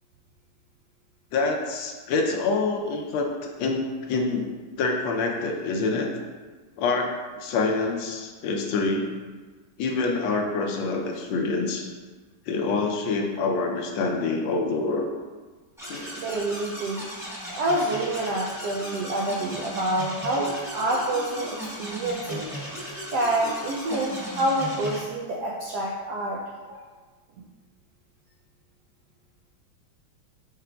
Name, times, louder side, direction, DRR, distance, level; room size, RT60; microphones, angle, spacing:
voice 1, 1.3-3.3 3.6-4.5 4.8-6.1 6.8-7.1 7.4-9.1 9.8-11.9 12.5-15.1 15.9-16.1, left 3 dB, 80° left, 2 dB, 1.3 m, -26 dB
sound 1, 15.8-25.0, equal, ahead, 0.6 m, -37 dB
voice 2, 16.1-17.1 17.5-22.8 23.1-26.4 26.7-26.8, right 1 dB, 80° right, -3 dB, 0.9 m, -27 dB
4.9 x 4.8 x 2.2 m, 1.4 s
omnidirectional pair, 2.3 m